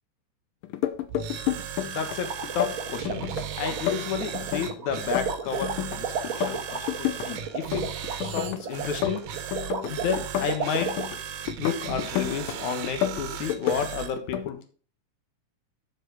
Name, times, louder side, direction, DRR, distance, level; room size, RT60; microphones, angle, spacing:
sound 1, 0.6-2.2 2.4-3.4 3.7-6.0 6.2-7.3 7.5-8.6 8.8-11.2 11.5-12.6 12.8-13.9 14.2-14.5, left 13 dB, 90° left, 2.4 m, -30 dB
sound 2, 1.1-14.1, right 9 dB, 80° right, 2.5 m, -37 dB
voice 1, 1.8-2.3 2.5-3.3 3.6-7.9 8.2-9.2 9.9-10.9 11.6-14.6, left 7 dB, 65° left, 6 dB, 2.5 m, -31 dB
sound 3, 1.9-11.1, right 6 dB, 60° right, 1.3 m, -33 dB
7.5 x 7.2 x 4.7 m, 0.40 s
omnidirectional pair, 3.9 m